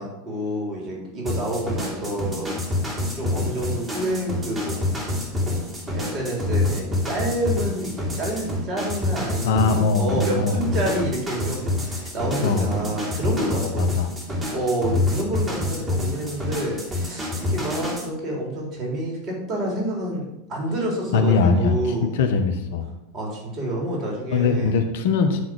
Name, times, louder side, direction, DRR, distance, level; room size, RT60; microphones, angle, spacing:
voice 1, 0.0-2.5 3.1-5.2 5.4-5.6 5.9-13.9 14.3-22.2 23.1-24.7, right 1 dB, 40° right, -2 dB, 3.6 m, -28 dB
sound 1, 1.3-18.1, left 2 dB, 25° right, 2.8 m, -27 dB
voice 2, 9.4-10.6 12.4-12.7 13.5-14.1 21.1-22.9 24.3-25.4, left 4 dB, 70° left, 6 dB, 1.2 m, -21 dB
10.0 x 3.8 x 6.1 m, 0.90 s
hypercardioid pair, 95°, 0 cm